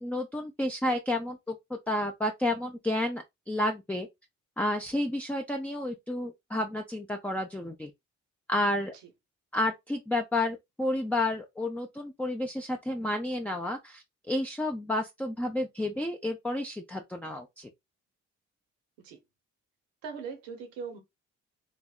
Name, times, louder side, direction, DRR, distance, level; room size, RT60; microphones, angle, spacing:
voice 1, 0.0-4.1 4.6-7.9 8.5-8.9 9.5-17.7, left 1 dB, 5° left, 0.4 m, -31 dB
voice 2, 20.0-21.0, right 5 dB, 80° right, 0.8 m, -40 dB
3.4 x 2.0 x 2.3 m
hypercardioid pair, 45°, 35 cm